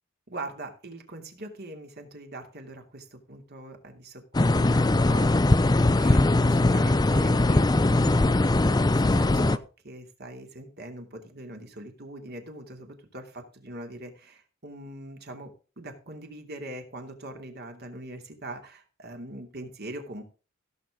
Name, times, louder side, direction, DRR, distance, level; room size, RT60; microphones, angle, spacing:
voice 1, 0.3-20.2, right 1 dB, 50° right, 4 dB, 2.8 m, -42 dB
sound 1, 4.3-9.6, left 2 dB, 20° left, 0.5 m, -21 dB
16.5 x 7.1 x 3.7 m, 0.34 s
head